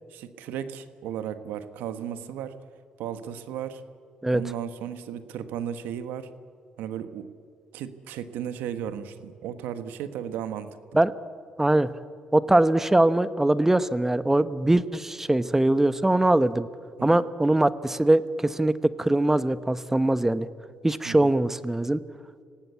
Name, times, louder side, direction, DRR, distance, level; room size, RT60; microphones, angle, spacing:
voice 1, 0.1-2.6 3.0-3.8 4.3-6.3 6.8-7.3 7.7-10.7 17.0-17.2 21.0-21.3, right 9 dB, 85° right, 10 dB, 1.4 m, -35 dB
voice 2, 11.6-11.9 12.3-16.7 17.0-20.5 20.8-22.0, right 1 dB, 10° right, 14 dB, 1.1 m, -22 dB
26.5 x 17.5 x 8.4 m, 2.2 s
supercardioid pair, 75°, 3 cm